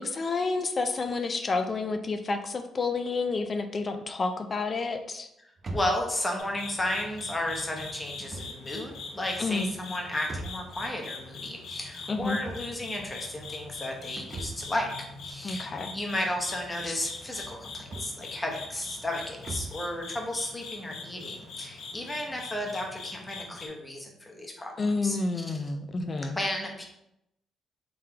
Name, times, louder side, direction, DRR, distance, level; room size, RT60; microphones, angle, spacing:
voice 1, 0.0-5.3 9.4-9.7 12.1-12.4 15.4-16.0 16.8-17.0 24.8-26.4, left 3 dB, 40° left, 7 dB, 0.4 m, -30 dB
sound 1, 5.6-19.9, right 2 dB, 40° right, 0.7 m, -44 dB
voice 2, 5.7-25.6 26.4-26.9, left 1 dB, 20° left, 1 dB, 0.9 m, -33 dB
sound 2, 6.4-23.7, left 4 dB, 80° left, 0.8 m, -42 dB
3.7 x 3.2 x 2.9 m, 0.82 s
cardioid pair, 90°, 0 cm